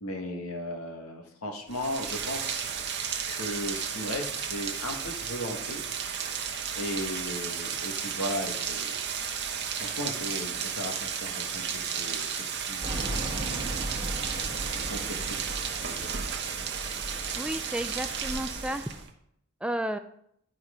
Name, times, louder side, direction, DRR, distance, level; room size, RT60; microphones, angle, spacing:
voice 1, 0.0-2.7 3.3-5.8 6.7-9.0 9.8-13.8 14.9-16.2, left 1 dB, 80° left, 2 dB, 1.5 m, -36 dB
Rain, 1.7-19.1, right 7 dB, 55° right, 1.0 m, -33 dB
sound 1, 12.8-19.0, right 1 dB, 25° right, 1.4 m, -38 dB
voice 2, 17.4-18.8 19.6-20.0, right 1 dB, 5° right, 9 dB, 0.3 m, -32 dB
11.5 x 4.4 x 5.0 m, 0.71 s
head